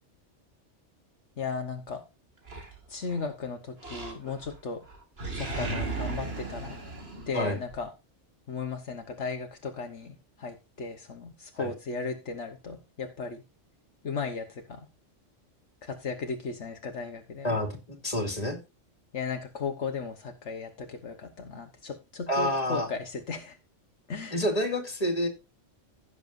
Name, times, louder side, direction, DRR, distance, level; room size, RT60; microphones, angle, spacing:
voice 1, 1.4-2.0 2.9-4.8 5.3-6.8 7.3-7.9 8.5-13.4 14.0-14.8 15.8-17.5 19.1-23.6 24.1-24.4, left 4 dB, 70° left, 4 dB, 1.5 m, -36 dB
Animal, 2.5-3.3 3.8-4.6 4.9-7.8, right 3 dB, 55° right, 2.5 m, -36 dB
voice 2, 17.4-17.8 18.0-18.6 22.3-22.9 24.3-25.3, left 1 dB, 30° left, 4 dB, 2.5 m, -28 dB
16.0 x 7.0 x 2.6 m, 0.28 s
omnidirectional pair, 1.3 m